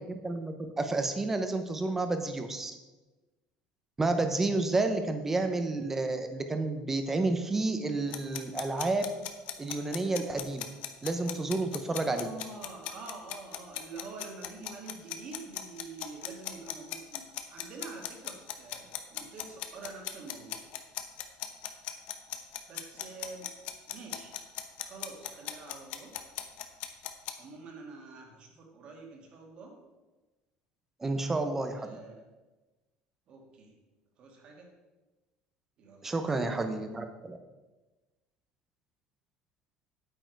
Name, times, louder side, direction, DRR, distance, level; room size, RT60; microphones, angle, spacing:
voice 1, 0.0-2.7 4.0-9.1 9.6-10.6 11.0-12.3 31.0-31.9 36.0-37.4, right 2 dB, 10° right, 7 dB, 0.8 m, -30 dB
sound 1, 8.1-27.3, left 12 dB, 50° left, 0.9 m, -38 dB
voice 2, 11.9-20.7 22.4-23.5 23.9-24.3 24.8-26.1 27.4-29.8 31.7-32.3 33.3-33.8 34.2-34.7 35.8-36.6, right 4 dB, 35° right, 1 dB, 2.1 m, -47 dB
9.0 x 8.8 x 4.7 m, 1.2 s
cardioid pair, 170°, 3 cm